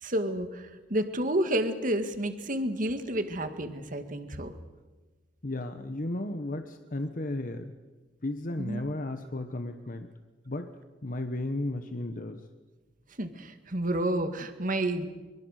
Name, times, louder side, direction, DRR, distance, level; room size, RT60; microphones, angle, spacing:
voice 1, 0.0-4.5 8.6-8.8 13.2-15.1, right 1 dB, 50° right, 8 dB, 2.0 m, -30 dB
voice 2, 5.4-7.7 8.2-10.1 10.4-10.7 11.0-12.4, left 2 dB, 50° left, 7 dB, 1.2 m, -34 dB
24.0 x 23.5 x 6.6 m, 1.3 s
head